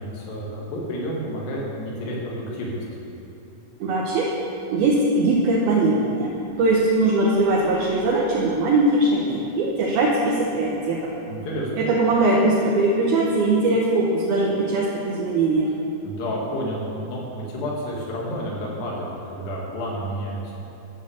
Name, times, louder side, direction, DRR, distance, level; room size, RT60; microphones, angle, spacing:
voice 1, 0.0-2.8 11.3-11.9 16.0-20.5, equal, 75° left, -3 dB, 3.9 m, -30 dB
voice 2, 3.8-4.3 4.7-11.1 11.8-15.7, right 2 dB, 75° right, -3 dB, 2.5 m, -21 dB
12.0 x 7.3 x 6.9 m, 2.9 s
omnidirectional pair, 5.0 m